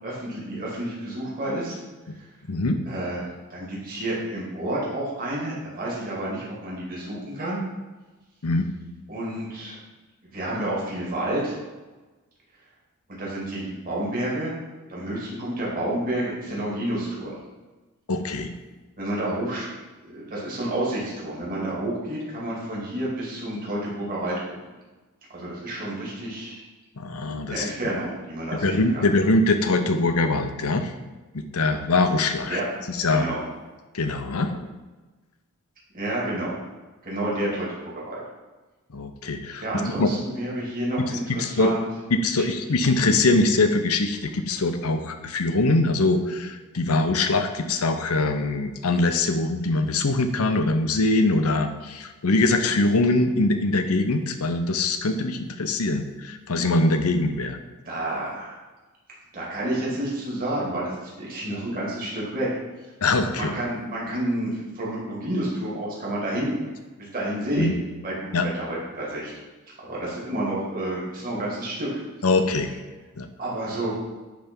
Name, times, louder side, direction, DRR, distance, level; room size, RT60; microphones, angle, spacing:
voice 1, 0.0-1.8 2.1-2.2 2.9-7.6 9.1-9.8 10.3-11.6 13.1-14.5 14.9-17.4 19.0-19.7 20.0-24.6 25.3-26.6 27.5-29.0 32.5-32.6 33.1-33.4 35.9-36.6 37.0-38.2 39.6-41.8 42.3-42.4 57.9-58.5 59.3-62.5 63.4-66.6 67.0-67.7 68.0-69.3 69.8-71.9 73.4-73.9, right 1 dB, 40° right, -5 dB, 2.5 m, -29 dB
voice 2, 2.5-2.8 8.4-8.7 18.1-18.5 27.0-27.7 28.6-30.9 31.3-32.6 32.9-33.3 33.9-34.6 38.9-40.1 41.4-41.7 42.1-57.6 63.0-63.5 67.6-67.7 68.3-68.5 72.2-72.7 73.2-73.3, left 2 dB, 75° left, 7 dB, 0.8 m, -23 dB
10.0 x 3.4 x 5.3 m, 1.2 s
head